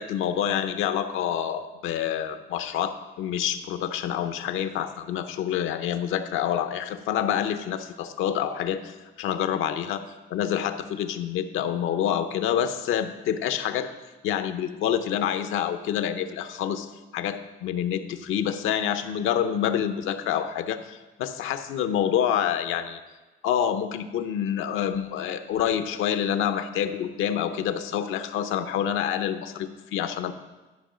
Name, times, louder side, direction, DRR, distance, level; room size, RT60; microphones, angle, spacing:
voice 1, 0.0-10.0 10.3-13.9 14.2-16.9 17.1-23.0 23.4-30.3, left 9 dB, 85° left, 9 dB, 0.7 m, -27 dB
11.5 x 5.5 x 5.0 m, 1.2 s
cardioid pair, 90°, 20 cm